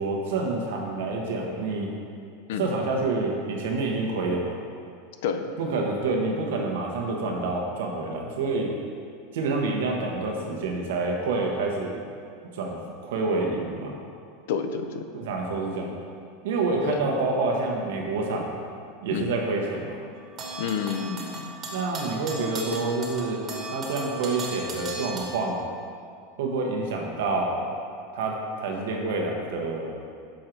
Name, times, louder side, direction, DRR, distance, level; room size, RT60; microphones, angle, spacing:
voice 1, 0.0-1.9 2.6-4.6 5.6-8.7 9.3-12.0 12.5-13.9 15.1-15.9 16.4-18.5 19.0-20.0 21.7-23.5 23.7-25.6 26.4-27.6 28.1-29.9, right 3 dB, 80° right, 0 dB, 1.0 m, -27 dB
voice 2, 14.5-15.1 16.8-17.0 19.1-19.3 20.6-21.5, left 7 dB, 75° left, 7 dB, 0.4 m, -29 dB
sound 1, 20.2-25.2, right 3 dB, 30° right, 1.1 m, -36 dB
6.2 x 3.8 x 4.5 m, 2.4 s
supercardioid pair, 150°, 0 cm